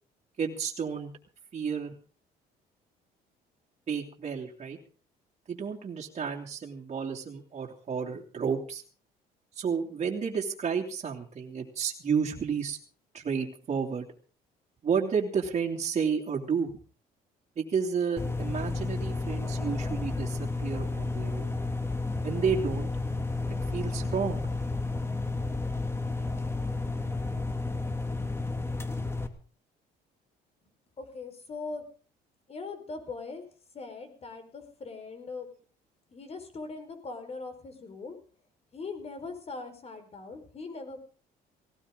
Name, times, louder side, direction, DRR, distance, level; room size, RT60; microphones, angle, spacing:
voice 1, 0.4-1.1 1.5-1.9 3.9-4.8 5.5-8.8 9.6-12.8 13.1-14.1 14.8-16.8 17.6-21.6 22.2-22.9 23.5-24.5, right 6 dB, 40° right, -1 dB, 2.9 m, -31 dB
sound 1, 18.2-29.3, left 3 dB, 15° left, 2.1 m, -32 dB
voice 2, 31.0-31.8 32.5-33.4 33.7-35.5 36.1-38.2 38.7-41.0, left 3 dB, 40° left, 7 dB, 4.8 m, -40 dB
18.0 x 18.0 x 3.9 m, 0.39 s
cardioid pair, 110°, 17 cm